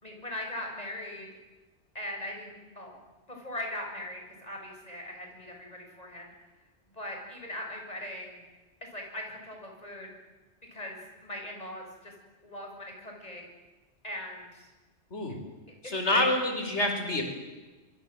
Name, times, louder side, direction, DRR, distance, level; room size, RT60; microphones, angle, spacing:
voice 1, 0.0-1.3 1.9-3.0 3.3-6.3 6.9-8.4 8.9-10.1 10.7-12.1 12.4-13.5 14.0-14.7 16.1-16.3, left 1 dB, 35° left, 1 dB, 7.2 m, -40 dB
voice 2, 15.8-17.2, left 1 dB, 75° left, 4 dB, 4.9 m, -27 dB
26.0 x 24.5 x 7.9 m, 1.2 s
omnidirectional pair, 1.2 m